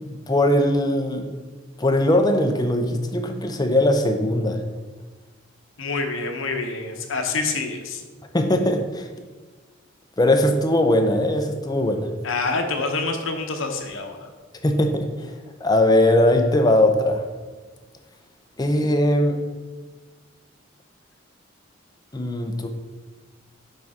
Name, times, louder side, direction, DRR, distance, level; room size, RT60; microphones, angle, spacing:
voice 1, 0.0-1.3 1.8-4.6 8.3-9.1 10.2-12.1 14.6-15.3 15.6-17.2 18.6-19.4 22.1-22.7, left 1 dB, 20° left, 5 dB, 0.5 m, -20 dB
voice 2, 5.8-8.0 12.2-14.3, left 3 dB, 80° left, 4 dB, 0.8 m, -27 dB
6.5 x 3.6 x 4.7 m, 1.3 s
head